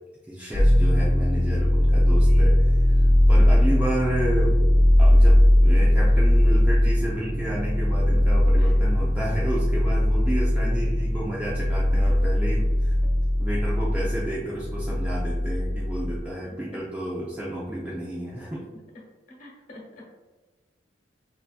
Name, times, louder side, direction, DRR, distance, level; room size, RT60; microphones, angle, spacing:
voice 1, 0.3-3.0 3.3-4.6 5.0-12.9 13.4-18.6, right 1 dB, 10° right, -6 dB, 0.5 m, -31 dB
sound 1, 0.5-16.2, left 1 dB, 75° left, 0.8 m, -19 dB
voice 2, 2.1-2.6 8.6-8.7 10.6-11.0 13.0-13.1 15.4-15.5 16.4-16.8 17.6-17.7 19.4-20.0, left 1 dB, 45° left, -3 dB, 1.2 m, -45 dB
6.5 x 2.7 x 2.2 m, 1.3 s
head